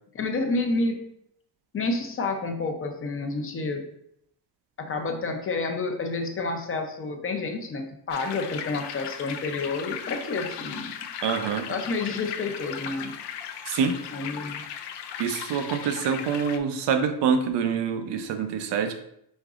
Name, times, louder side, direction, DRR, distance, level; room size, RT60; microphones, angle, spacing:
voice 1, 0.1-1.0 1.7-3.8 4.8-10.9 11.7-13.1 14.1-14.6, left 3 dB, 30° left, 5 dB, 0.6 m, -29 dB
sound 1, 8.1-16.6, left 8 dB, 75° left, 0.5 m, -37 dB
voice 2, 11.2-11.7 13.7-14.0 15.2-18.9, right 6 dB, 85° right, 7 dB, 0.7 m, -26 dB
5.2 x 3.8 x 2.4 m, 0.74 s
cardioid pair, 140°, 41 cm